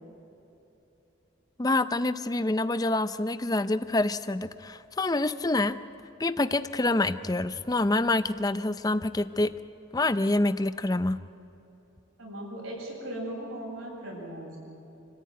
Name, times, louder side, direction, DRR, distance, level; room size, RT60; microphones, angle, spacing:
voice 1, 1.6-5.8 6.2-9.5 9.9-11.2, left 2 dB, 20° left, 12 dB, 0.5 m, -26 dB
voice 2, 12.2-14.6, right 1 dB, 85° right, -3 dB, 7.7 m, -38 dB
27.0 x 14.5 x 9.3 m, 3.0 s
head